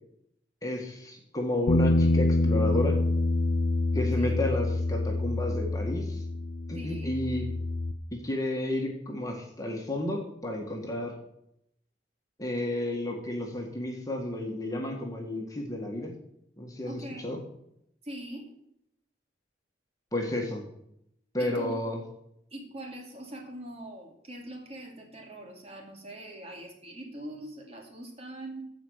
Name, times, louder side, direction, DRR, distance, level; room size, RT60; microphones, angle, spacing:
voice 1, 0.6-2.9 3.9-6.2 6.7-7.5 8.2-11.1 12.4-16.1 16.6-17.4 20.1-20.6 21.3-22.0, left 1 dB, 20° left, 0 dB, 1.7 m, -32 dB
Bass guitar, 1.7-7.9, left 2 dB, 70° left, 0.8 m, -26 dB
voice 2, 4.0-4.4 6.7-7.1 16.9-17.4 18.0-18.4 21.4-21.8 22.5-28.6, right 1 dB, 35° right, 1 dB, 2.6 m, -42 dB
15.0 x 5.2 x 6.5 m, 0.76 s
head